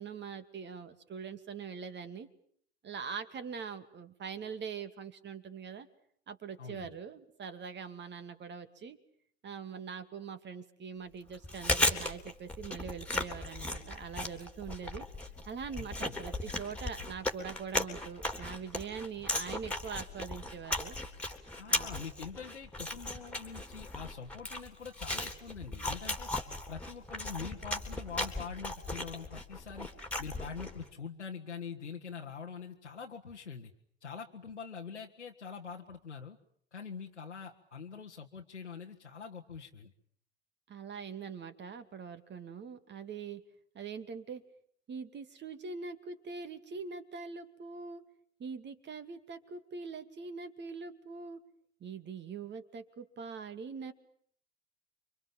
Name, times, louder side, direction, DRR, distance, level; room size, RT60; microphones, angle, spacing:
voice 1, 0.0-2.3 2.8-5.9 6.3-9.0 9.4-15.1 15.5-21.0 21.7-21.9 40.7-43.4 43.7-44.4 44.9-48.0 48.4-51.4 51.8-53.9, right 6 dB, 30° right, 10 dB, 2.6 m, -43 dB
voice 2, 6.6-6.9 15.7-16.2 21.6-26.3 26.7-29.9 30.2-33.7 34.0-36.4 36.7-39.9, left 6 dB, 85° left, -1 dB, 1.5 m, -44 dB
Chewing mastication, 11.3-30.8, left 2 dB, 5° left, 3.5 m, -36 dB
29.5 x 25.0 x 7.5 m, 0.64 s
figure-of-eight pair, 75°, 34 cm